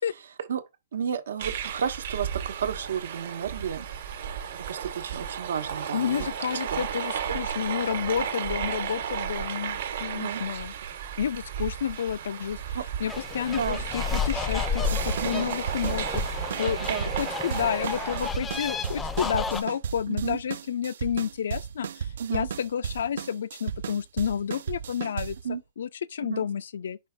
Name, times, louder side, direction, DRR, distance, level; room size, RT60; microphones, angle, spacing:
voice 1, 0.9-3.9 4.7-6.3 6.7-6.8 7.3-7.4 10.1-10.4 12.7-12.9 13.6-13.8 15.2-15.5 16.9-17.0 20.1-20.4 22.2-22.5 25.4-25.6 26.2-26.5, right 7 dB, 85° right, 1.1 m, -32 dB
sound 1, 1.4-18.3, right 8 dB, 50° right, 1.1 m, -34 dB
voice 2, 5.9-10.7 11.2-16.8 17.2-25.4 25.8-27.0, left 8 dB, 90° left, 0.3 m, -30 dB
sound 2, 13.1-19.6, left 5 dB, 10° left, 0.4 m, -32 dB
sound 3, 14.8-25.5, right 7 dB, 70° right, 0.3 m, -35 dB
5.5 x 3.3 x 5.0 m
hypercardioid pair, 175°, 0 cm